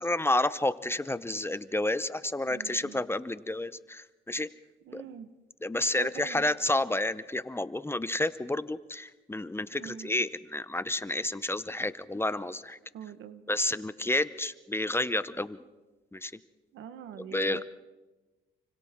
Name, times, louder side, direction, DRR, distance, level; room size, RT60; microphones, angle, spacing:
voice 1, 0.0-4.5 4.9-5.0 5.6-12.8 13.5-15.6 16.1-16.3 17.3-17.6, left 1 dB, 10° left, 14 dB, 0.8 m, -30 dB
voice 2, 2.4-3.0 4.8-5.3 6.0-6.5 9.7-10.1 12.9-13.4 16.7-17.6, right 9 dB, 80° right, 11 dB, 1.3 m, -44 dB
29.5 x 25.0 x 3.7 m, 1.1 s
cardioid pair, 90°, 20 cm